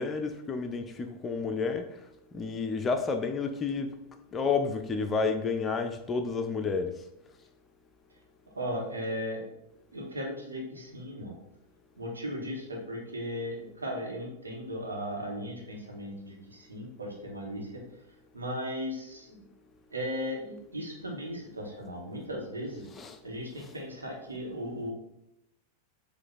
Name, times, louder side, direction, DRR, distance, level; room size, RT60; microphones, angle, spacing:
voice 1, 0.0-1.9 2.3-3.9 4.3-7.0 22.9-23.2 23.6-23.7, left 4 dB, 20° left, 6 dB, 0.6 m, -30 dB
voice 2, 8.6-9.5 9.9-11.4 12.0-17.8 18.3-19.4 19.9-22.8 23.2-24.9, equal, 75° right, -2 dB, 1.9 m, -37 dB
7.9 x 3.2 x 4.3 m, 0.85 s
figure-of-eight pair, 90°, 0 cm